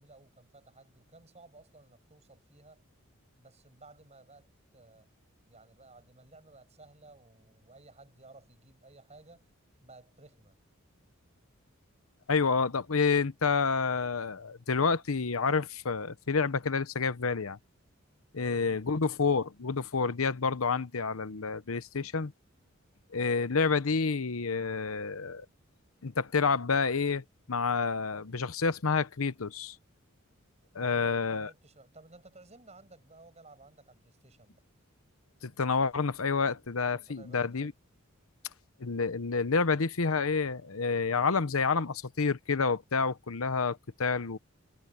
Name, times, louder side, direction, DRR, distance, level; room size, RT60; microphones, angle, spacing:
voice 1, 0.0-2.8 3.4-4.5 4.7-5.1 5.5-9.5 9.8-10.6 18.4-18.9 30.7-34.6 36.9-37.7, right 2 dB, 30° right, 7.4 m, -55 dB
voice 2, 12.3-17.6 18.3-22.3 23.1-25.5 26.0-29.8 30.7-31.5 35.4-37.7 38.8-44.4, left 4 dB, 80° left, 0.9 m, -29 dB
head